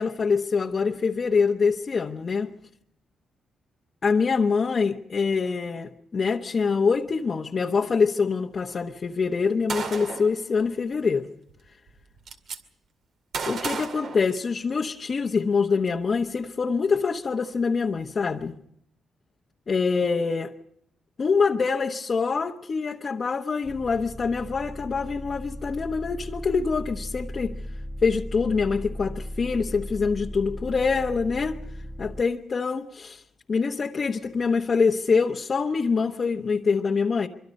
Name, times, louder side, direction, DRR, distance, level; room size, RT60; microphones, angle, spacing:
voice 1, 0.0-2.5 4.0-11.3 13.5-18.5 19.7-20.5 21.2-27.5 28.0-31.5 32.0-33.2 33.5-37.3, left 5 dB, 40° left, 1 dB, 1.1 m, -25 dB
Gunshot gunfire, 9.7-10.3 11.5-11.6 11.9-12.6 13.3-14.8, right 5 dB, 65° right, 2.3 m, -32 dB
sound 1, 23.6-32.2, equal, 10° right, 1.1 m, -37 dB
24.5 x 24.5 x 5.4 m, 0.73 s
cardioid pair, 105°, 0 cm